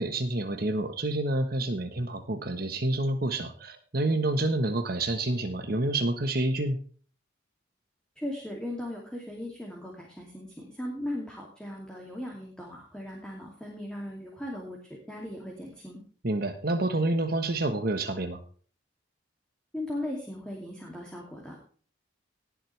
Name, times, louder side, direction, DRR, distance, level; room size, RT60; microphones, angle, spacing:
voice 1, 0.0-6.8 16.2-18.4, right 2 dB, 50° right, 7 dB, 1.3 m, -28 dB
voice 2, 8.2-14.8 15.1-16.0 19.7-21.6, left 1 dB, 5° left, -2 dB, 2.7 m, -38 dB
18.5 x 7.7 x 3.4 m, 0.44 s
head